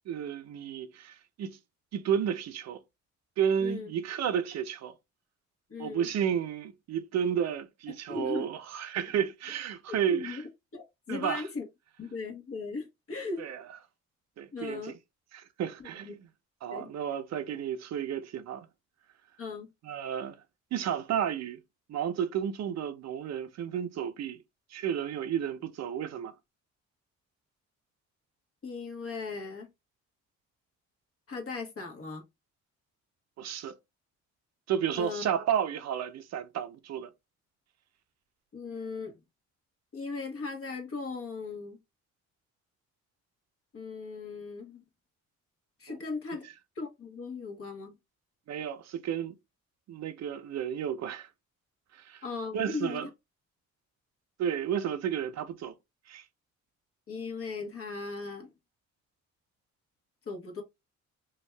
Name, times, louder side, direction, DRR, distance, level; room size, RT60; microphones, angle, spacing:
voice 1, 0.1-1.6 1.9-2.8 3.4-4.9 5.8-10.4 11.1-11.4 13.4-13.6 14.4-15.0 15.3-16.2 16.6-18.7 19.8-20.4 20.7-21.6 21.9-24.4 24.7-26.3 33.4-33.7 34.7-37.1 45.9-46.0 48.5-49.3 49.9-51.3 51.9-52.2 52.5-53.1 54.4-55.7 56.1-56.3, right 8 dB, 60° right, 0.5 m, -32 dB
voice 2, 3.6-3.9 5.7-6.1 8.1-8.4 9.2-9.3 10.1-10.4 10.7-11.6 12.0-13.4 14.5-14.9 16.0-16.1 16.7-16.9 19.4-19.7 28.6-29.7 31.3-32.2 34.9-35.2 38.5-39.2 39.9-41.8 43.7-44.8 45.8-46.5 46.8-48.0 52.2-53.1 57.1-58.5 60.3-60.6, left 4 dB, 50° left, 1.2 m, -38 dB
2.6 x 2.3 x 3.2 m
cardioid pair, 90°, 30 cm